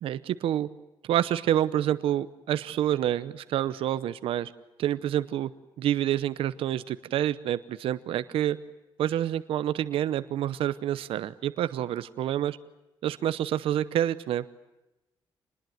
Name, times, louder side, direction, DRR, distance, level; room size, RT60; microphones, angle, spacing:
voice 1, 0.0-0.7 1.0-4.5 4.8-5.5 5.8-8.6 9.0-12.6 13.0-14.5, right 11 dB, 80° right, 13 dB, 0.8 m, -28 dB
27.5 x 21.0 x 9.3 m, 0.98 s
cardioid pair, 155°, 9 cm